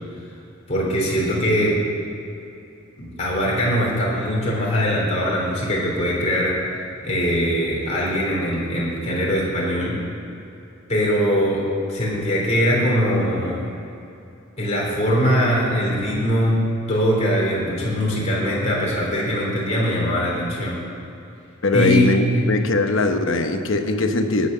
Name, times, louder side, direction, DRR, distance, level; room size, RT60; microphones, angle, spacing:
voice 1, 0.7-1.8 3.0-6.6 7.0-9.9 10.9-13.6 14.6-16.6 16.9-20.8 21.7-22.4, equal, 35° left, -5 dB, 3.4 m, -21 dB
voice 2, 21.6-24.5, left 3 dB, 70° left, 6 dB, 1.0 m, -20 dB
18.0 x 6.3 x 6.6 m, 2.7 s
head